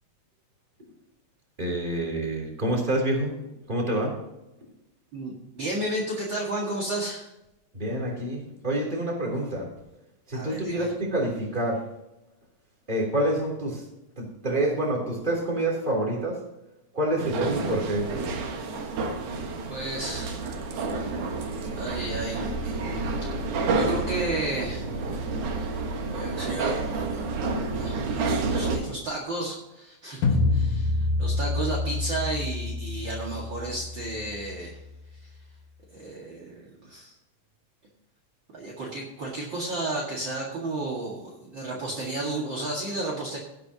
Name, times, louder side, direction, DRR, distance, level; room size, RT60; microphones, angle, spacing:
voice 1, 1.6-3.4 3.7-4.2 7.7-9.7 10.3-11.9 12.9-13.8 14.2-16.4 16.9-18.1, right 1 dB, 15° right, -1 dB, 3.2 m, -27 dB
voice 2, 5.1-7.3 10.3-10.9 19.7-20.4 21.7-22.5 23.2-23.4 23.7-24.9 26.1-26.8 27.1-27.2 27.7-34.8 35.1-35.2 35.9-37.2 38.5-43.4, right 2 dB, 40° right, -3 dB, 2.4 m, -33 dB
sound 1, 17.2-28.8, right 3 dB, 85° right, 3.1 m, -29 dB
sound 2, 30.2-35.3, left 3 dB, 80° left, 2.9 m, -28 dB
17.5 x 9.1 x 2.9 m, 0.95 s
omnidirectional pair, 3.4 m